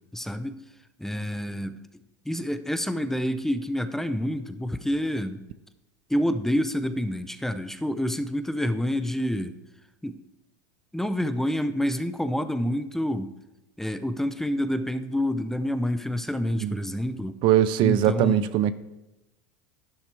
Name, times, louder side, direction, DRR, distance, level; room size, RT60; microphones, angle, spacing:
voice 1, 0.1-0.6 1.0-1.8 2.3-5.4 6.1-9.5 10.0-10.1 10.9-13.3 13.8-17.4 17.8-18.5, equal, 5° left, 11 dB, 0.6 m, -28 dB
voice 2, 17.4-18.7, right 12 dB, 55° right, 15 dB, 0.5 m, -21 dB
11.5 x 10.5 x 3.4 m, 0.98 s
hypercardioid pair, 90°, 10 cm